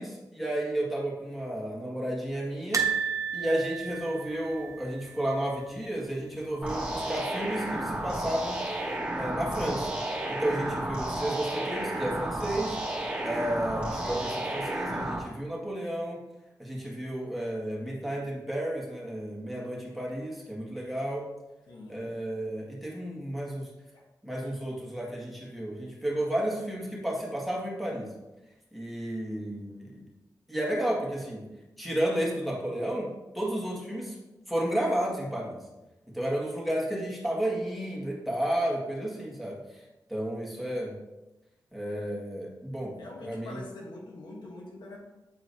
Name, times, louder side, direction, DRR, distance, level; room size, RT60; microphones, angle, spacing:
voice 1, 0.0-2.8 3.3-8.6 9.1-10.0 10.3-12.8 13.2-16.2 16.6-21.3 21.9-23.7 24.2-28.1 28.7-30.0 30.5-31.4 31.8-33.1 33.3-34.2 34.5-35.6 36.1-39.8 40.1-40.9 41.7-42.9 43.3-43.6, right 1 dB, ahead, -4 dB, 1.8 m, -32 dB
sound 1, 2.7-5.8 6.0-6.3 6.5-6.6 7.8-8.4 8.9-9.0, right 6 dB, 50° right, 0.6 m, -32 dB
sound 2, 6.6-15.2, right 1 dB, 15° right, 1.7 m, -32 dB
voice 2, 21.7-22.2 23.9-24.1 43.0-45.0, left 2 dB, 90° left, -1 dB, 1.1 m, -44 dB
8.0 x 4.5 x 2.7 m, 1.0 s
cardioid pair, 65°, 7 cm